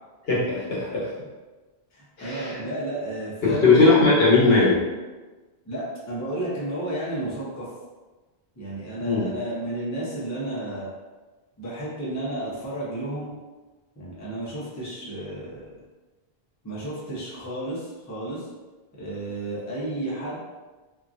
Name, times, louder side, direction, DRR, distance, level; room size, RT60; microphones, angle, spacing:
voice 1, 0.3-1.1 2.2-2.6 3.4-4.8 9.0-9.3, left 3 dB, 70° left, -7 dB, 1.2 m, -19 dB
voice 2, 1.9-3.8 5.7-7.7 8.6-10.9 11.6-13.3 14.0-15.8 16.6-18.5 19.0-20.4, right 1 dB, 20° left, -7 dB, 0.6 m, -32 dB
2.9 x 2.4 x 2.4 m, 1.2 s
omnidirectional pair, 1.1 m